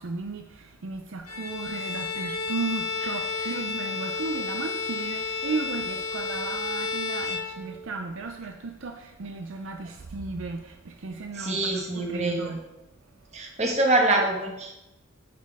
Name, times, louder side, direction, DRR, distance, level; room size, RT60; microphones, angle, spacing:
voice 1, 0.0-12.6, right 3 dB, 65° right, 0.5 m, -35 dB
Bowed string instrument, 1.3-8.0, left 4 dB, 90° left, 1.4 m, -32 dB
voice 2, 11.3-12.6 13.3-14.7, right 2 dB, 35° right, 1.3 m, -25 dB
9.4 x 4.4 x 4.7 m
head